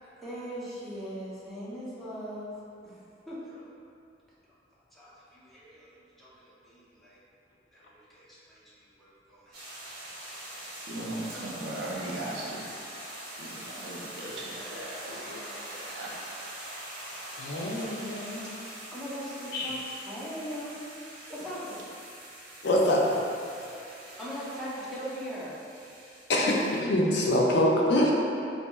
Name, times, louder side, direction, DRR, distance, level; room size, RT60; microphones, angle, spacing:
voice 1, 0.0-2.6 2.8-3.0 3.3-3.6 4.9-7.2 7.7-9.6 18.9-22.1 24.2-25.6, equal, ahead, -9 dB, 0.7 m, -40 dB
sound 1, 9.5-26.8, right 1 dB, 55° right, 1.1 m, -43 dB
voice 2, 10.9-12.6 13.4-16.1, right 1 dB, 80° right, -5 dB, 0.6 m, -38 dB
voice 3, 17.4-18.5 19.5-19.7 22.6-23.0 26.3-26.6 26.8-28.1, left 1 dB, 65° left, -2 dB, 0.5 m, -24 dB
4.1 x 2.7 x 2.3 m, 2.6 s
head